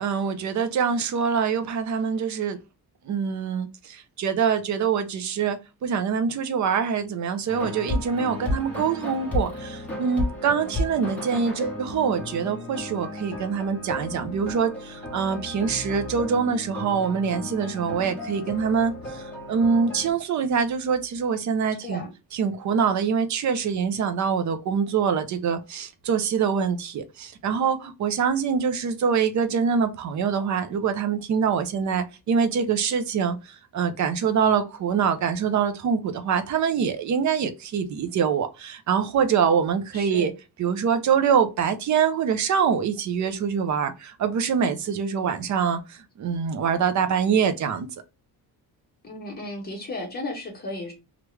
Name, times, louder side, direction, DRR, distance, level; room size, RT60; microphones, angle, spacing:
voice 1, 0.0-2.6 3.0-22.0 22.3-40.3 40.6-47.9, right 6 dB, 50° right, 0.6 m, -24 dB
sound 1, 7.5-20.1, left 1 dB, 5° left, 1.2 m, -33 dB
voice 2, 39.9-40.3 49.0-50.9, left 2 dB, 25° left, 1.3 m, -34 dB
3.1 x 2.4 x 3.2 m
cardioid pair, 155°, 38 cm